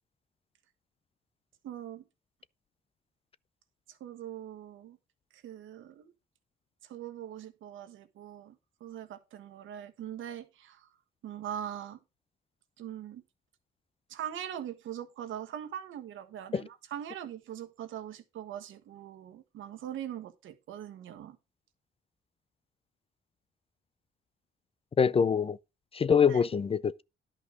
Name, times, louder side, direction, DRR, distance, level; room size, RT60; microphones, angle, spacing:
voice 1, 1.6-2.0 3.9-5.0 5.3-6.1 6.8-10.9 11.2-12.0 12.8-13.2 14.1-21.4 26.3-26.4, right 10 dB, 80° right, 1.5 m, -42 dB
voice 2, 25.0-25.6 25.9-27.0, left 6 dB, 30° left, 0.4 m, -24 dB
11.0 x 5.5 x 5.0 m
cardioid pair, 90°, 20 cm